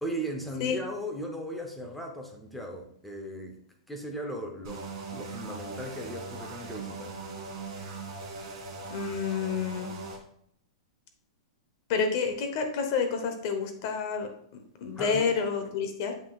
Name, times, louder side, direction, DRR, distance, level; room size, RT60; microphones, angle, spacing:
voice 1, 0.0-3.6 3.9-7.2 15.0-15.3, right 1 dB, 5° left, 2 dB, 0.6 m, -37 dB
sound 1, 4.6-10.2, right 3 dB, 45° right, 2.0 m, -40 dB
voice 2, 8.9-9.9 11.9-14.3 14.8-16.1, left 5 dB, 40° left, 6 dB, 0.8 m, -29 dB
7.3 x 5.7 x 2.3 m, 0.68 s
supercardioid pair, 170°, 3 cm